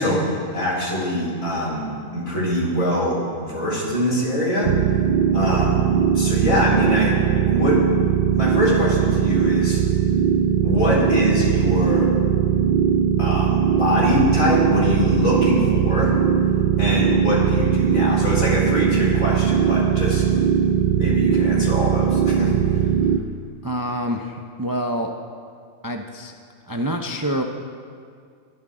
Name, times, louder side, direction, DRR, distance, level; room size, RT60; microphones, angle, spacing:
voice 1, 0.0-3.1 3.4-4.7 5.3-5.8 6.1-7.1 7.5-7.8 8.3-9.8 10.6-12.1 13.2-16.1 16.8-20.2 20.9-22.5, left 1 dB, 75° left, -6 dB, 4.8 m, -23 dB
sound 1, 4.6-23.2, right 8 dB, 90° right, 0.4 m, -19 dB
voice 2, 23.6-25.1 25.8-26.3 26.6-27.4, equal, 25° right, 3 dB, 0.5 m, -26 dB
20.5 x 12.5 x 3.8 m, 2.2 s
omnidirectional pair, 1.4 m